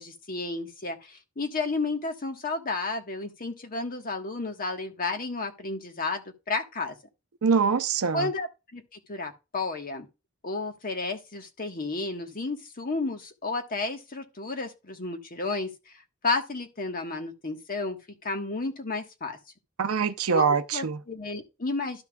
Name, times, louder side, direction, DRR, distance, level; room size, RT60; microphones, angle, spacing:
voice 1, 0.0-7.0 8.1-10.1 10.4-19.4 20.3-22.0, left 3 dB, 45° left, 1.4 m, -32 dB
voice 2, 7.4-8.3 19.8-21.0, right 6 dB, 80° right, 0.6 m, -24 dB
13.0 x 5.8 x 2.3 m
head